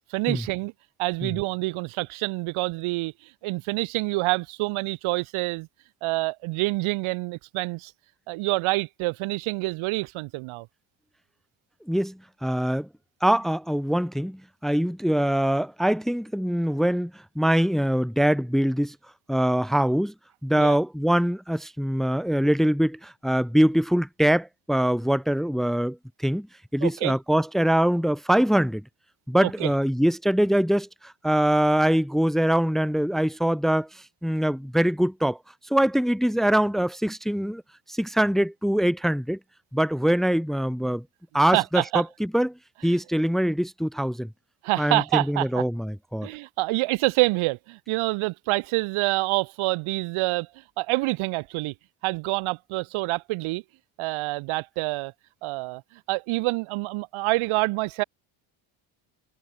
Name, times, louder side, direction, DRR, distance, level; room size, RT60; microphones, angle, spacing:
voice 1, 0.1-0.7 1.0-3.1 3.4-5.7 6.0-7.9 8.3-10.7 20.6-20.8 26.8-27.1 29.4-29.7 41.5-42.0 42.9-43.0 44.6-45.6 46.2-50.5 50.8-51.7 52.0-53.6 54.0-55.1 55.4-58.0, right 22 dB, 80° right, 3.0 m, -27 dB
voice 2, 11.9-12.9 13.2-18.9 19.3-20.1 20.4-26.0 26.2-26.5 26.7-28.8 29.3-35.4 35.7-37.6 37.9-39.4 39.7-41.0 41.3-42.5 42.8-44.3 44.8-46.3, equal, ahead, 1.2 m, -23 dB
cardioid pair, 110°, 47 cm